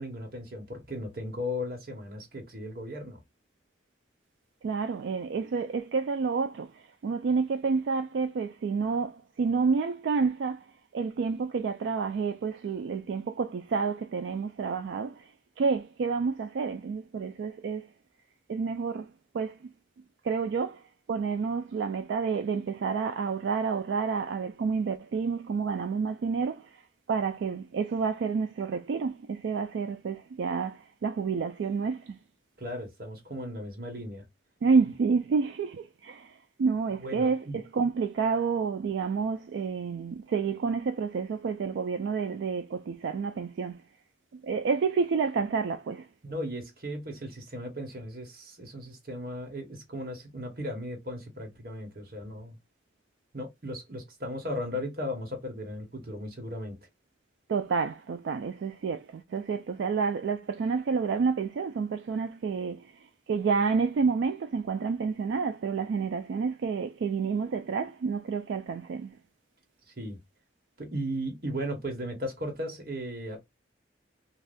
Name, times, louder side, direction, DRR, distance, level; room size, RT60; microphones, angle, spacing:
voice 1, 0.0-3.2 32.6-34.2 36.9-37.6 46.2-52.6 53.3-56.8 70.0-70.2 70.8-73.4, equal, 50° right, 1.2 m, -36 dB
voice 2, 4.6-10.7 10.9-15.3 15.6-17.9 18.5-19.1 19.3-19.6 20.2-20.8 21.1-26.8 27.1-32.2 34.6-43.8 44.4-46.1 57.5-69.2, right 5 dB, 80° right, 0.3 m, -29 dB
2.6 x 2.3 x 3.4 m
head